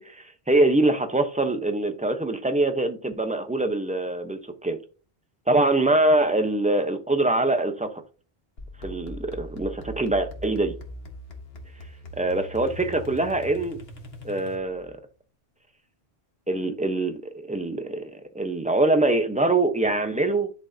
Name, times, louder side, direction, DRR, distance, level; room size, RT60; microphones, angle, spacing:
voice 1, 0.0-4.8 5.5-8.0 8.8-10.7 12.1-13.8 14.2-15.0 16.5-20.5, right 2 dB, 5° right, 0.9 m, -24 dB
sound 1, 8.6-14.9, left 1 dB, 65° left, 1.7 m, -41 dB
11.0 x 6.2 x 2.8 m
omnidirectional pair, 1.1 m